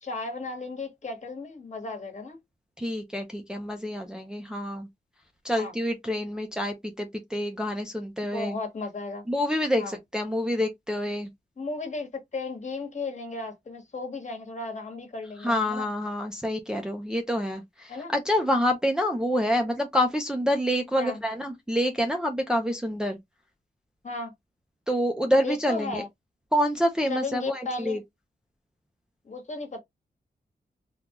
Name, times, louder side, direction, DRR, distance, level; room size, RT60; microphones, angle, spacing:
voice 1, 0.0-2.4 5.5-5.7 8.3-9.2 9.8-10.0 11.6-15.9 17.9-18.1 21.0-21.2 24.0-24.3 25.4-26.1 27.1-28.0 29.2-29.8, left 3 dB, 45° left, 1.3 m, -35 dB
voice 2, 2.8-4.9 5.4-8.6 9.3-11.3 15.4-23.2 24.9-26.0 26.5-28.0, equal, 5° right, 0.5 m, -27 dB
3.7 x 2.3 x 2.9 m
wide cardioid pair, 130°, 17 cm